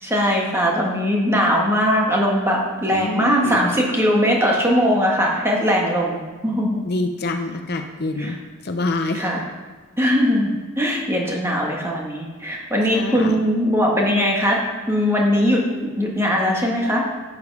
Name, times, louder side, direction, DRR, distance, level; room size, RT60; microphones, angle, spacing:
voice 1, 0.0-6.8 8.2-8.4 9.1-9.4 10.0-10.5 10.8-14.6 14.9-17.0, equal, 10° right, -2 dB, 1.6 m, -20 dB
voice 2, 2.9-3.7 6.9-8.4 8.6-9.2 12.9-13.4, left 2 dB, 45° left, 6 dB, 0.6 m, -26 dB
11.5 x 7.0 x 4.8 m, 1.4 s
head